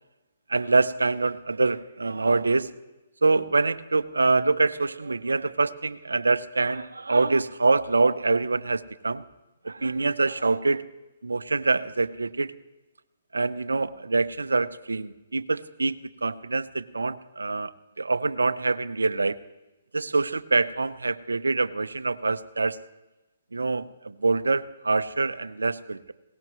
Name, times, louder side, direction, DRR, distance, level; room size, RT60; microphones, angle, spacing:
voice 1, 0.5-2.7 3.2-9.2 9.6-10.8 11.2-12.5 13.3-19.4 19.9-22.8 23.5-26.1, right 3 dB, 85° right, 15 dB, 0.6 m, -25 dB
20.0 x 18.0 x 3.1 m, 1.1 s
figure-of-eight pair, 135°, 0 cm